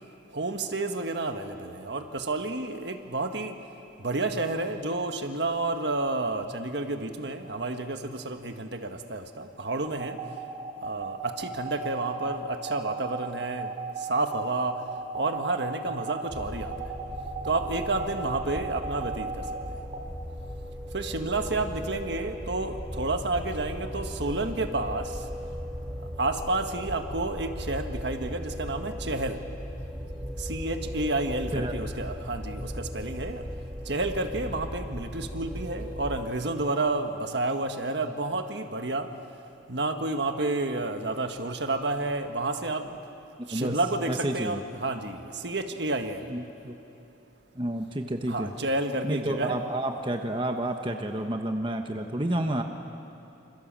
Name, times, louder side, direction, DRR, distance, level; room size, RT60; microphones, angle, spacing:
voice 1, 0.3-3.6 4.0-10.2 10.8-13.7 14.1-14.7 15.1-16.7 17.4-19.4 20.9-25.2 26.2-29.4 30.4-33.4 33.9-39.1 39.7-43.0 43.5-46.3 48.3-49.6, right 2 dB, 60° right, 6 dB, 1.6 m, -30 dB
sound 1, 9.8-20.0, right 5 dB, 40° right, 2.7 m, -36 dB
sound 2, 16.3-36.2, equal, 5° right, 2.2 m, -37 dB
voice 2, 44.1-44.6 46.3-46.8 47.5-48.5 49.0-52.6, right 1 dB, 25° right, 4 dB, 1.2 m, -30 dB
27.5 x 27.0 x 7.6 m, 2.8 s
head